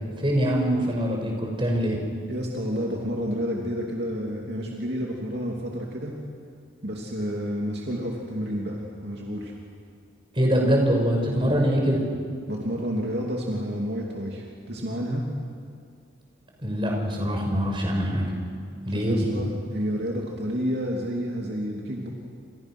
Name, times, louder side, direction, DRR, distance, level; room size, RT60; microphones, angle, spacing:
voice 1, 0.2-2.0 10.3-12.0 16.6-18.3 18.9-19.3, equal, 25° right, 0 dB, 5.6 m, -23 dB
voice 2, 2.3-6.1 6.8-9.5 12.5-15.2 19.1-22.1, equal, 55° right, -2 dB, 3.0 m, -30 dB
29.0 x 27.5 x 6.3 m, 2.2 s
head